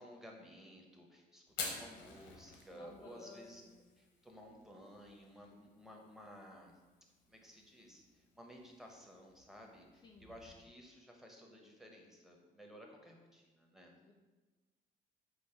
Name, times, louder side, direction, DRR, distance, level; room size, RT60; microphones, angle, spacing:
voice 1, 0.0-3.6 4.0-6.8 7.3-13.9, equal, ahead, 0 dB, 0.7 m, -55 dB
Fire, 1.5-10.7, left 4 dB, 85° left, 0.9 m, -51 dB
voice 2, 2.7-3.9 10.0-10.7 14.0-14.1, left 3 dB, 25° left, -1 dB, 0.4 m, -57 dB
5.2 x 2.1 x 4.4 m, 1.2 s
cardioid pair, 110°, 17 cm